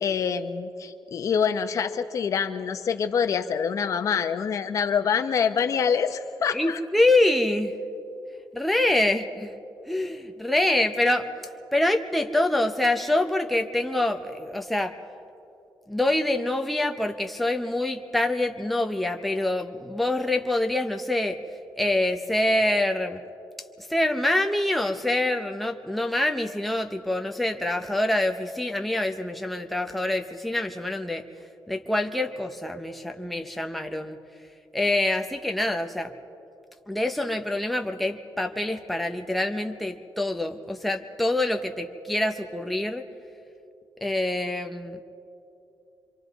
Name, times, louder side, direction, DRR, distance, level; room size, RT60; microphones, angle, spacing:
voice 1, 0.0-6.8, left 7 dB, 45° left, 8 dB, 0.8 m, -26 dB
voice 2, 6.5-7.7 8.5-9.6 9.9-11.3 11.7-15.0 15.9-21.4 21.8-23.2 23.8-31.2 31.7-34.2 34.7-36.1 36.9-43.1 44.0-45.0, left 1 dB, ahead, 4 dB, 0.7 m, -25 dB
26.0 x 25.5 x 4.0 m, 2.7 s
wide cardioid pair, 180°, 7 cm